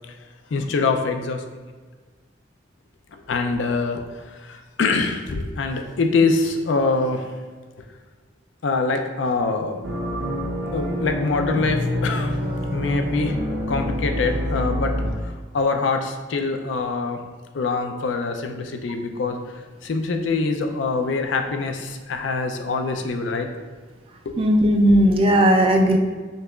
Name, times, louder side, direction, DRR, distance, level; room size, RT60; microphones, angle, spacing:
voice 1, 0.5-1.4 3.1-7.3 8.6-9.8 10.7-12.4 12.7-13.4 13.7-14.9 15.2-17.2 17.5-23.5 24.3-24.4, left 3 dB, 70° left, 5 dB, 0.4 m, -24 dB
sound 1, 9.8-15.1, equal, 60° right, 0.7 m, -26 dB
voice 2, 24.4-26.0, equal, 30° right, 3 dB, 0.3 m, -16 dB
5.4 x 2.8 x 2.3 m, 1.4 s
head